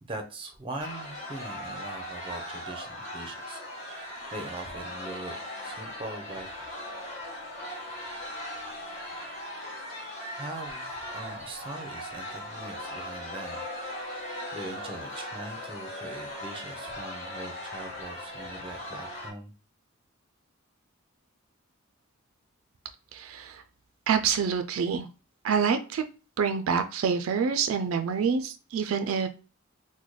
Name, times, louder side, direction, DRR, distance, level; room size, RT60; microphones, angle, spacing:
voice 1, 0.0-5.3 5.6-6.5 10.3-13.6 14.1-14.2 14.5-19.5, right 2 dB, 25° right, 5 dB, 0.6 m, -41 dB
sound 1, 0.8-19.3, left 1 dB, 35° left, 1.0 m, -39 dB
voice 2, 23.1-23.6 24.1-25.1 25.4-26.0 26.4-29.3, right 6 dB, 75° right, 9 dB, 0.3 m, -27 dB
3.8 x 2.1 x 3.1 m, 0.35 s
head